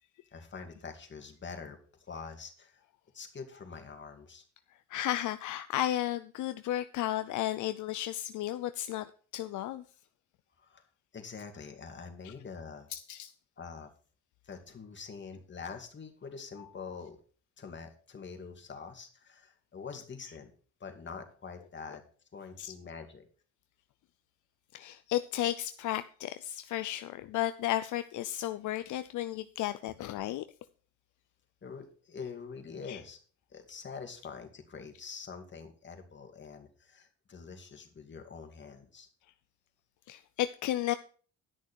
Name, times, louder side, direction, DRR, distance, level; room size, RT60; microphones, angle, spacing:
voice 1, 0.3-1.8 2.1-2.8 3.1-4.4 10.6-10.8 11.1-12.9 13.6-13.9 14.4-17.2 17.6-20.5 20.8-22.0 22.3-23.2 31.6-33.2 33.5-39.1, left 5 dB, 40° left, 2.4 m, -45 dB
voice 2, 4.9-9.8 12.2-12.3 12.9-13.3 22.6-22.7 24.7-30.4 32.9-33.0 40.1-40.9, left 13 dB, 75° left, 0.6 m, -33 dB
11.0 x 6.4 x 6.2 m
cardioid pair, 90°, 30 cm